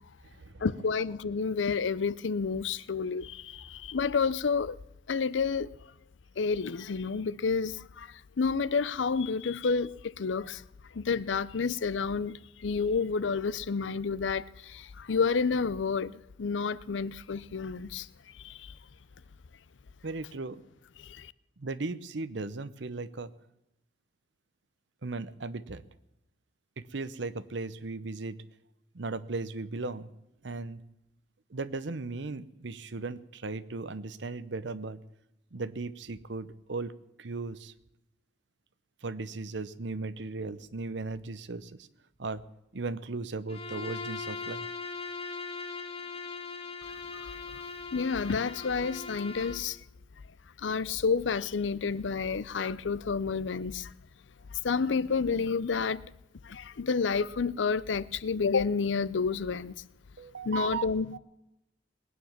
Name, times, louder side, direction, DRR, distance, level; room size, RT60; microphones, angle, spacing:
voice 1, 0.6-4.8 5.1-5.7 6.4-10.6 10.9-18.1 18.3-18.7 21.0-21.3 47.1-47.4 47.9-49.8 50.6-53.9 54.5-56.1 56.4-59.7 60.4-61.2, left 5 dB, 80° left, 0.6 m, -30 dB
voice 2, 20.0-20.6 21.6-23.3 25.0-25.8 26.8-28.4 28.9-30.1 30.4-30.8 31.5-35.0 35.5-36.9 37.2-37.7 39.0-41.9 42.2-42.4 42.7-44.7 60.2-61.2, right 3 dB, 70° right, 0.8 m, -37 dB
Bowed string instrument, 43.5-49.7, left 4 dB, 35° left, 1.9 m, -40 dB
20.5 x 9.4 x 7.3 m
head